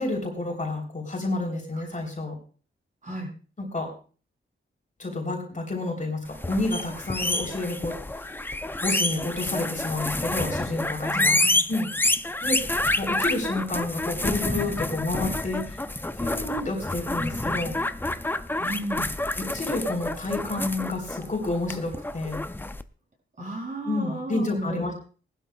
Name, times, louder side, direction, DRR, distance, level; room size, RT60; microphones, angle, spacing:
voice 1, 0.0-2.3 3.6-3.9 5.0-8.2 8.8-11.4 11.7-11.9 12.4-12.6 13.0-15.8 16.2-17.7 19.5-22.4 23.8-25.0, left 2 dB, 35° left, 1 dB, 3.4 m, -29 dB
sound 1, 6.3-22.8, left 2 dB, 10° left, 0.5 m, -28 dB
voice 2, 11.0-11.6 18.6-19.1 23.4-24.8, right 1 dB, 35° right, -1 dB, 6.7 m, -34 dB
19.5 x 12.0 x 2.3 m, 0.37 s
wide cardioid pair, 120°, 21 cm